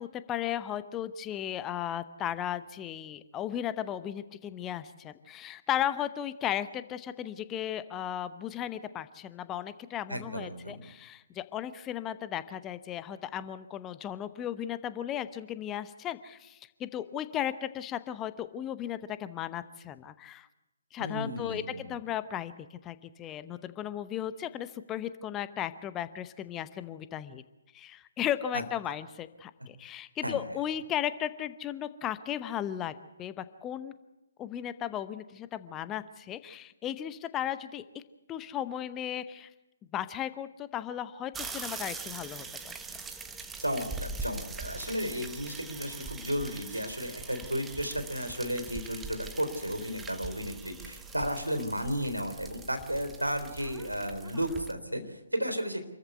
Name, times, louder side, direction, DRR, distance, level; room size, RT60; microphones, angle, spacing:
voice 1, 0.0-20.5 20.9-27.4 27.7-33.9 34.4-38.0 38.3-39.5 39.9-42.7, left 10 dB, 15° left, 14 dB, 0.8 m, -35 dB
voice 2, 10.1-10.9 21.0-22.0 28.5-28.6 30.2-30.4 43.6-55.8, equal, 85° right, 8 dB, 3.7 m, -33 dB
sound 1, 41.3-54.7, right 4 dB, 10° right, 1.2 m, -42 dB
27.0 x 14.5 x 8.2 m, 1.0 s
figure-of-eight pair, 135°, 0 cm